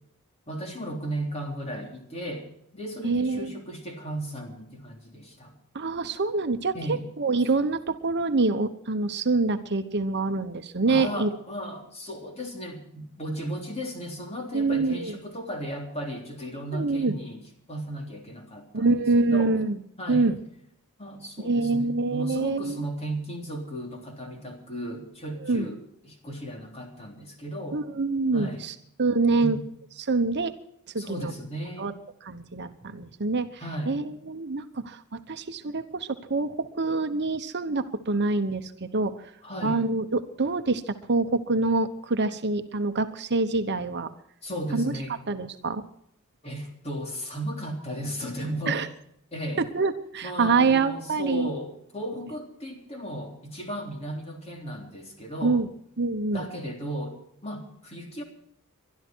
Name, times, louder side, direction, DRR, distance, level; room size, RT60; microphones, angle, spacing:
voice 1, 0.5-5.6 6.7-7.1 10.9-19.6 20.0-20.3 21.0-27.8 28.3-28.6 29.3-29.6 31.0-31.9 33.6-34.1 39.4-39.8 44.4-45.2 46.4-48.8 49.3-49.6 50.2-55.6 56.3-58.2, equal, 30° left, 2 dB, 3.4 m, -35 dB
voice 2, 3.0-3.6 5.7-11.3 14.5-15.1 16.7-17.2 18.7-19.8 20.1-20.3 21.4-22.8 25.4-25.7 27.7-29.6 30.0-30.5 30.9-31.3 31.8-31.9 32.2-39.2 39.6-44.1 44.7-44.9 45.3-45.9 48.7-48.9 49.7-51.5 55.4-55.7 56.0-56.5, right 3 dB, 50° right, 8 dB, 1.0 m, -26 dB
22.5 x 12.5 x 4.6 m, 0.70 s
head